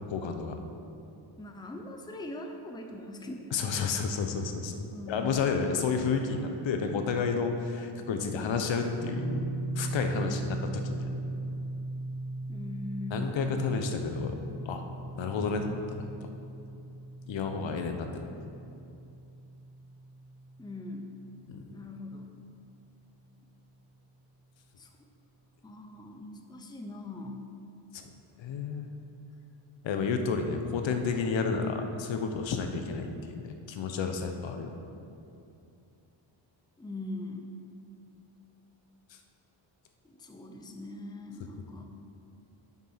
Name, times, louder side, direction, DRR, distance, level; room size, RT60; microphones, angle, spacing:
voice 1, 0.1-0.6 3.5-9.5 9.8-11.2 13.1-14.4 14.7-14.8 15.2-16.1 17.3-18.3 21.5-21.6 27.9-28.1 28.4-28.9 29.8-34.7, left 5 dB, 70° left, 5 dB, 0.9 m, -31 dB
voice 2, 1.4-3.6 4.9-5.3 12.5-13.4 20.6-21.1 21.7-22.3 24.8-24.9 25.6-27.4 36.8-37.5 40.0-41.9, left 2 dB, 10° left, 3 dB, 0.6 m, -41 dB
sound 1, 9.0-21.9, right 2 dB, 45° right, 1.5 m, -38 dB
7.3 x 6.2 x 5.7 m, 2.7 s
cardioid pair, 115°, 47 cm